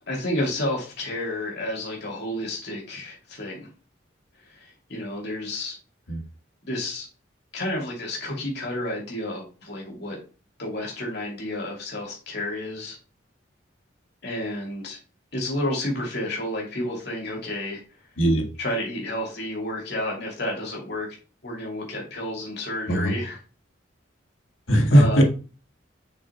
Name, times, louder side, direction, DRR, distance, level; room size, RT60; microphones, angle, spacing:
voice 1, 0.1-3.7 4.5-5.8 6.6-7.1 7.5-10.2 10.6-13.0 14.2-15.0 15.3-17.8 18.6-21.1 21.4-23.4 24.9-25.2, left 1 dB, 55° left, -2 dB, 2.7 m, -30 dB
voice 2, 24.7-25.2, right 1 dB, 90° left, 3 dB, 1.7 m, -18 dB
7.8 x 6.1 x 2.3 m, 0.35 s
head